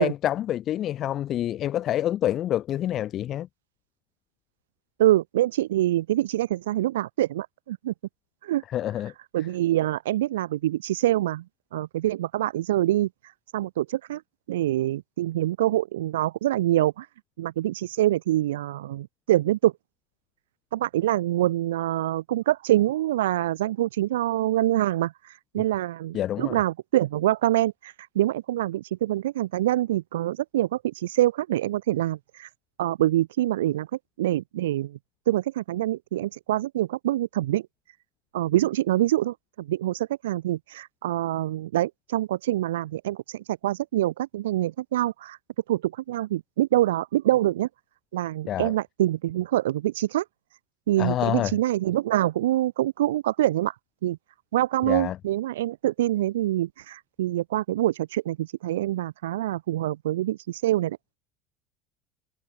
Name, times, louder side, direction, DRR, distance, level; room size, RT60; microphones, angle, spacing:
voice 1, 0.0-3.5 8.7-9.1 26.1-26.6 48.5-48.7 51.0-51.6 54.9-55.2, left 12 dB, 50° left, 4.4 m, -27 dB
voice 2, 5.0-7.9 8.4-8.6 9.3-11.4 11.7-13.1 13.5-14.2 14.5-17.1 17.4-19.7 20.7-32.5 32.8-33.9 34.2-35.0 35.3-37.7 38.3-45.4 45.7-47.7 48.1-50.2 50.9-53.7 54.0-54.2 54.5-61.0, right 14 dB, 85° right, 6.5 m, -25 dB
hypercardioid pair, 90°, 0 cm